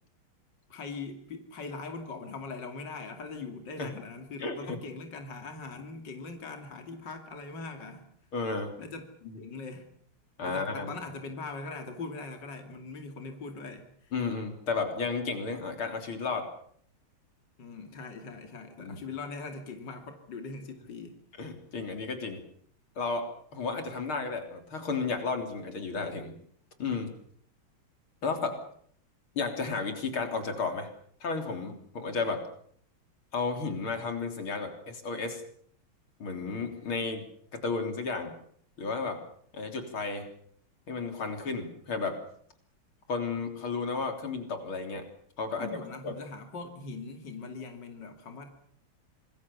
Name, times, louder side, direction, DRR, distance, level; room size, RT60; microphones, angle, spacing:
voice 1, 0.7-8.1 8.8-9.1 9.4-9.9 10.4-14.1 17.6-21.2 45.5-48.6, left 4 dB, 55° left, 5 dB, 3.3 m, -41 dB
voice 2, 4.4-4.8 8.3-8.7 9.2-9.4 10.4-10.9 14.1-16.5 18.8-19.0 21.4-22.4 23.0-26.3 26.8-27.1 28.2-28.6 29.4-30.9 31.2-32.4 33.3-35.4 36.2-37.2 37.5-38.3 38.8-39.2 39.5-40.3 40.9-42.2 43.1-45.0 45.4-45.7 46.0-46.1, left 4 dB, 85° left, 6 dB, 4.3 m, -33 dB
26.5 x 21.0 x 7.0 m, 0.62 s
omnidirectional pair, 2.3 m